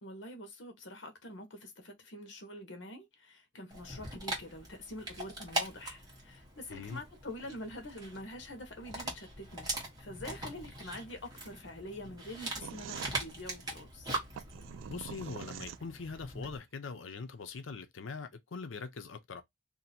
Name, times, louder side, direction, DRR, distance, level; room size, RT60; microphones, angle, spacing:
voice 1, 0.0-9.7 10.0-14.1, left 1 dB, 65° left, 1.1 m, -46 dB
Dog, 3.7-16.6, right 1 dB, 20° right, 1.2 m, -42 dB
voice 2, 6.7-7.0 14.9-19.4, left 4 dB, 85° left, 0.6 m, -42 dB
sound 1, 12.6-16.3, right 9 dB, 90° right, 0.3 m, -45 dB
2.7 x 2.6 x 4.1 m
head